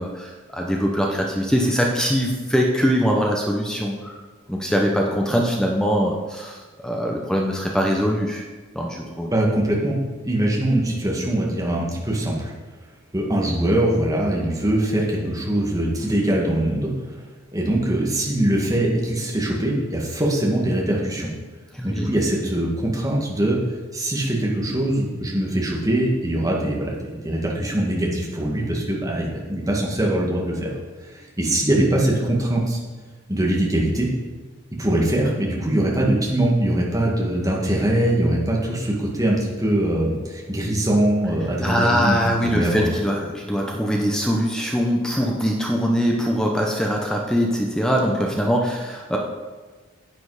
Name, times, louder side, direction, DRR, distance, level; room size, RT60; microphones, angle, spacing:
voice 1, 0.0-4.2 4.5-6.6 6.8-8.4 8.7-9.3 21.7-22.1 41.6-49.2, equal, 5° left, 0 dB, 0.9 m, -22 dB
voice 2, 9.3-10.0 10.2-12.5 13.1-16.9 17.5-21.3 21.8-23.6 23.9-30.7 31.1-32.8 33.3-34.1 34.8-42.2 42.5-42.9, right 1 dB, 15° right, -3 dB, 1.9 m, -22 dB
9.6 x 8.8 x 4.9 m, 1.4 s
head